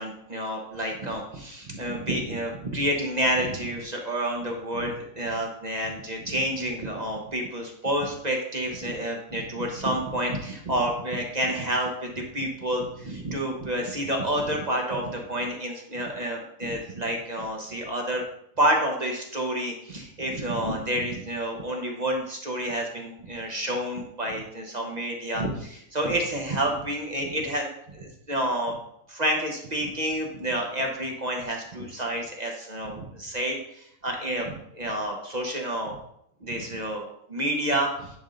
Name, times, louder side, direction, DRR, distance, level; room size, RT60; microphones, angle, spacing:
voice 1, 0.0-18.2 18.6-27.7 27.9-28.8 29.1-36.0 36.4-38.2, right 1 dB, 35° right, 1 dB, 1.0 m, -29 dB
10.5 x 3.5 x 3.9 m, 0.73 s
omnidirectional pair, 1.4 m